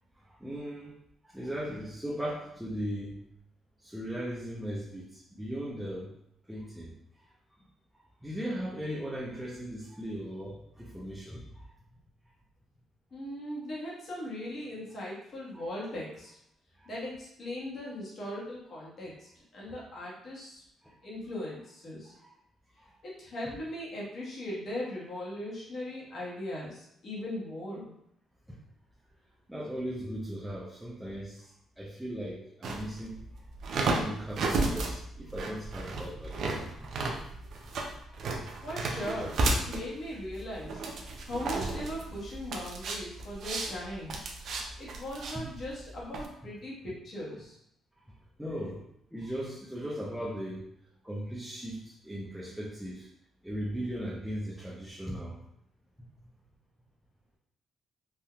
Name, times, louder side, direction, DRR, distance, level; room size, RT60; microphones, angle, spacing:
voice 1, 0.2-1.0 1.2-3.2 3.8-6.1 6.5-7.7 7.9-11.8 15.5-15.7 16.8-16.9 19.7-19.8 20.8-21.0 22.1-22.4 22.8-23.0 23.4-23.5 28.5-28.6 29.5-37.7 38.1-38.2 44.9-45.0 45.3-45.5 48.4-48.8 49.1-50.7 51.0-53.1 53.4-55.4, equal, ahead, -5 dB, 0.6 m, -38 dB
voice 2, 13.1-16.4 16.8-20.6 21.0-22.1 23.0-27.9 38.6-40.8 41.0-44.2 44.8-47.6, left 1 dB, 50° left, -5 dB, 1.3 m, -39 dB
sound 1, 32.6-46.3, right 2 dB, 65° right, 0.5 m, -33 dB
3.5 x 2.6 x 2.3 m, 0.75 s
cardioid pair, 90°, 0 cm